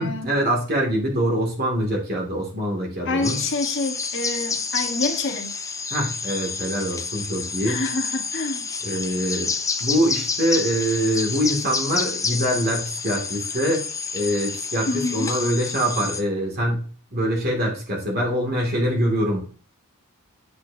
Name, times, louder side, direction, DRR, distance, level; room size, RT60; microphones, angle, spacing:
voice 1, 0.0-3.4 5.9-7.8 8.8-9.5 9.8-13.8 14.1-16.8 17.1-19.4, equal, 45° right, 2.5 m, -24 dB
voice 2, 3.0-5.5 7.6-8.7 14.9-15.3, left 2 dB, 55° left, 1.4 m, -27 dB
sound 1, 3.2-16.2, left 5 dB, 15° left, 0.5 m, -29 dB
8.2 x 7.6 x 2.8 m
head